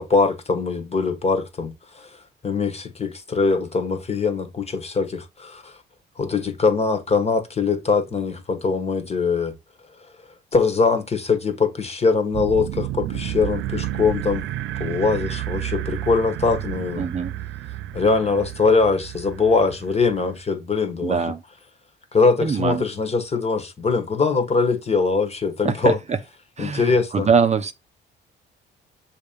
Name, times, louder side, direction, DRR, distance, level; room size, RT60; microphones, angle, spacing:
voice 1, 0.0-2.1 2.4-5.8 6.2-9.6 10.5-14.4 14.8-17.1 17.9-21.3 22.1-26.0 26.6-27.3, left 4 dB, 30° left, 1.3 m, -22 dB
sound 1, 12.3-20.4, right 14 dB, 75° right, 0.4 m, -31 dB
voice 2, 17.0-17.3 21.0-21.4 22.4-22.8 25.6-26.2 26.6-27.7, right 6 dB, 35° right, 0.7 m, -22 dB
6.7 x 2.9 x 5.1 m
cardioid pair, 90°, 20 cm